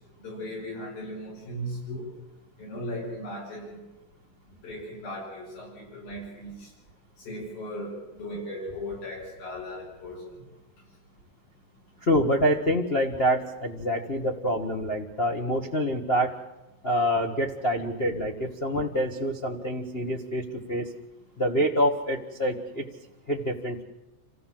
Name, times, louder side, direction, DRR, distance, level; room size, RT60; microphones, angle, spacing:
voice 1, 0.2-2.1 2.6-3.8 4.6-6.7 7.3-10.2, equal, 90° left, -3 dB, 8.8 m, -37 dB
voice 2, 12.0-16.3 16.8-20.9 21.4-22.8 23.3-23.8, equal, 65° left, -1 dB, 0.6 m, -26 dB
27.5 x 15.5 x 7.6 m, 1.0 s
omnidirectional pair, 4.0 m